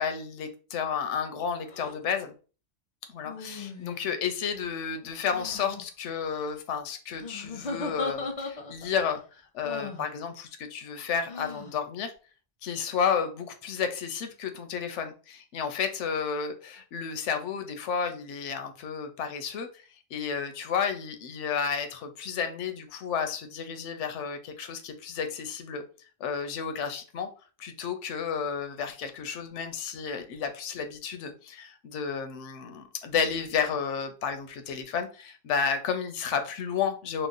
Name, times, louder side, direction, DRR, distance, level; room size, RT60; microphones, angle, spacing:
voice 1, 0.0-2.3 3.1-12.1 12.6-19.8 20.1-25.8 26.2-27.3 27.6-37.3, left 6 dB, 80° left, 0.9 m, -32 dB
sound 1, 1.7-1.9 3.2-4.1 5.2-5.8 7.2-8.9 9.6-10.1 11.3-11.7, left 3 dB, 45° left, 0.5 m, -37 dB
3.0 x 2.0 x 3.7 m
omnidirectional pair, 1.2 m